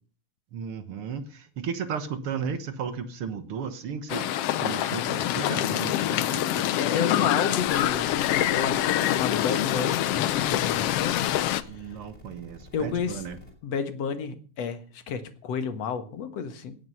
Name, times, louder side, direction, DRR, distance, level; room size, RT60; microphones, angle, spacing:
voice 1, 0.5-6.6 11.7-13.4, right 6 dB, 55° right, 11 dB, 1.9 m, -35 dB
sound 1, 4.1-11.6, left 12 dB, 75° left, 1.4 m, -25 dB
voice 2, 6.8-11.3 12.7-13.2 13.6-16.8, left 6 dB, 60° left, 10 dB, 2.5 m, -31 dB
sound 2, 7.6-13.5, left 1 dB, 25° left, 5.7 m, -50 dB
18.5 x 10.0 x 5.7 m, 0.42 s
omnidirectional pair, 3.6 m